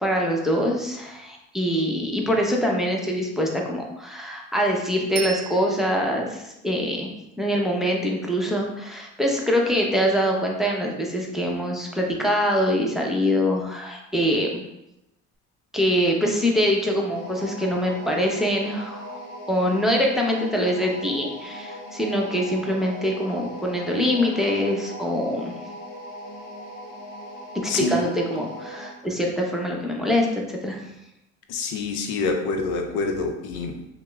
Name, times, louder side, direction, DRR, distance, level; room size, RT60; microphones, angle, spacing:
voice 1, 0.0-7.1 7.4-14.6 15.7-19.2 19.5-25.5 27.6-30.8, equal, ahead, 0 dB, 0.7 m, -24 dB
Bicycle bell, 5.2-6.3 15.3-15.4, right 7 dB, 60° right, 0.6 m, -35 dB
sound 1, 17.1-29.0, equal, 50° left, 1.2 m, -39 dB
voice 2, 27.7-28.0 31.5-33.9, left 3 dB, 75° left, 4 dB, 0.6 m, -26 dB
5.8 x 2.0 x 2.3 m, 0.87 s
hypercardioid pair, 70°, 37 cm